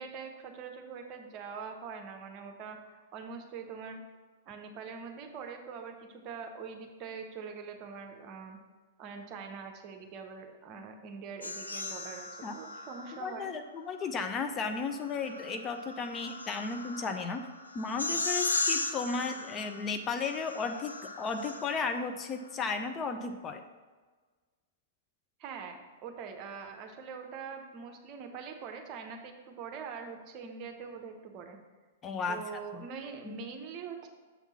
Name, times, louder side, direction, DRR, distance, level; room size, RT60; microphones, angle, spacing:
voice 1, 0.0-4.0 4.5-8.6 9.0-13.5 25.4-31.6 32.3-34.1, right 6 dB, 35° right, 4 dB, 0.8 m, -43 dB
sound 1, 11.4-13.4 14.8-22.0, left 3 dB, 80° left, 0.5 m, -37 dB
voice 2, 13.2-17.5 17.7-23.6 32.0-32.4 32.7-32.8 33.2-33.4, left 4 dB, 25° left, 6 dB, 0.4 m, -34 dB
7.1 x 3.6 x 5.7 m, 1.4 s
figure-of-eight pair, 105°, 0 cm